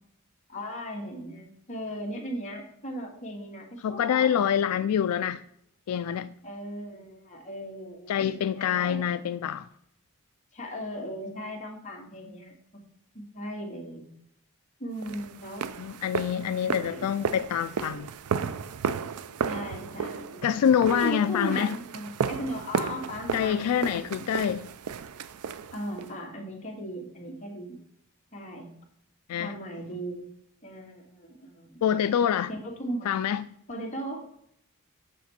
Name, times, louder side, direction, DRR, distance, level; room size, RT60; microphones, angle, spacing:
voice 1, 0.5-4.5 6.4-9.0 10.5-12.6 13.1-14.1 14.8-15.7 16.7-17.2 19.5-20.4 20.9-24.4 25.7-27.8 28.3-28.7 29.4-30.3 30.6-31.8 32.5-33.1 33.7-34.2, equal, 35° left, 1.9 m, -37 dB
voice 2, 3.8-5.4 5.9-6.3 8.1-9.7 15.8-18.1 20.4-21.8 23.3-24.7 29.3-29.6 31.8-32.5 33.0-33.5, left 9 dB, 85° left, 0.3 m, -26 dB
sound 1, 15.0-26.1, right 6 dB, 85° right, 0.4 m, -34 dB
8.2 x 6.0 x 4.2 m
head